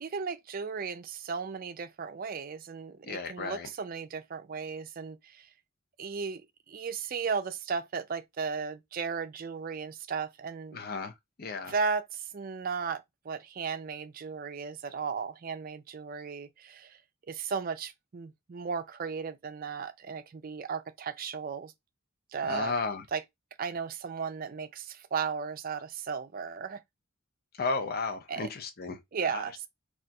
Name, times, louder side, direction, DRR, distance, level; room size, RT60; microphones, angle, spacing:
voice 1, 0.0-5.5 6.0-10.8 11.7-17.0 17.3-21.7 22.3-22.7 23.1-23.2 23.6-26.8 28.3-28.5 29.1-29.7, right 5 dB, 45° right, 0.4 m, -35 dB
voice 2, 3.0-3.7 10.7-11.1 11.4-11.7 22.4-23.0 27.6-29.0 29.3-29.4, left 4 dB, 45° left, 0.5 m, -33 dB
4.2 x 2.4 x 2.3 m
head